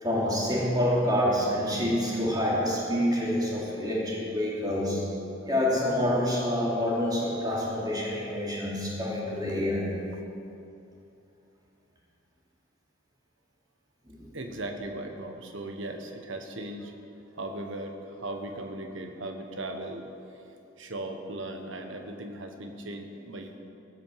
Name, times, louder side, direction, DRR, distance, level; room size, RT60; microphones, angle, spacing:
voice 1, 0.0-5.0 5.4-9.9 14.1-14.3, left 1 dB, 20° right, -6 dB, 2.8 m, -27 dB
voice 2, 14.3-16.9 17.3-20.4 20.8-23.5, right 1 dB, 70° right, 4 dB, 1.3 m, -38 dB
17.5 x 6.5 x 7.5 m, 2.7 s
head